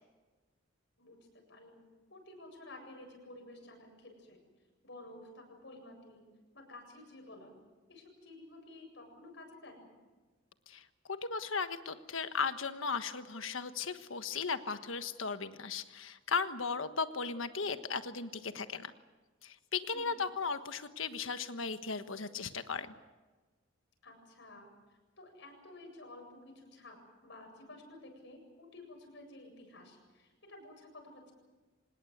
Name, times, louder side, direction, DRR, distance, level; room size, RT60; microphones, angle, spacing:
voice 1, 1.5-1.8 2.1-4.4 4.8-6.2 6.5-7.6 7.9-9.9 19.9-20.2 24.0-24.7 25.2-26.3 26.5-31.3, left 2 dB, 60° left, 3 dB, 7.8 m, -52 dB
voice 2, 10.7-18.9 19.4-22.9, left 5 dB, 80° left, 10 dB, 1.4 m, -36 dB
25.5 x 20.0 x 8.2 m, 1.3 s
head